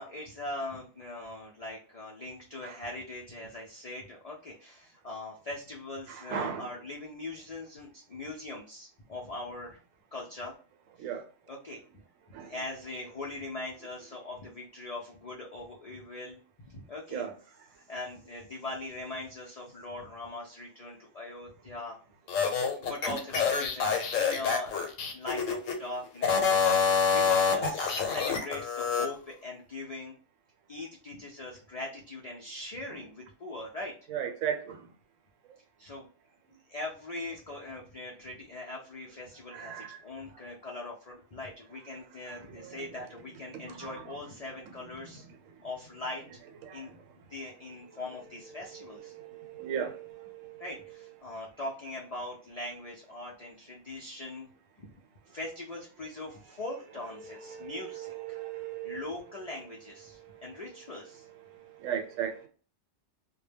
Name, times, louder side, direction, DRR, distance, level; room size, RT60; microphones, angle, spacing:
voice 1, 0.0-9.8 10.1-10.5 11.0-11.1 11.5-11.8 12.4-17.2 17.7-22.0 22.7-24.7 25.1-26.5 27.1-30.1 30.7-33.9 35.8-36.1 36.7-45.2 45.6-46.2 46.7-46.9 47.3-49.1 50.6-54.5 55.3-58.4 58.8-61.3, left 2 dB, 65° left, 0.3 m, -41 dB
voice 2, 6.1-6.7 11.0-11.3 12.3-12.5 17.1-17.7 34.1-34.9 36.5-36.6 39.5-40.0 42.3-43.0 43.5-43.9 45.0-45.7 46.6-47.3 48.6-50.6 57.2-59.0 60.1-60.4 61.5-62.5, right 8 dB, 85° right, 1.0 m, -38 dB
sound 1, 22.3-25.8 26.2-29.1, left 5 dB, 85° left, 1.0 m, -27 dB
2.2 x 2.0 x 3.2 m
omnidirectional pair, 1.3 m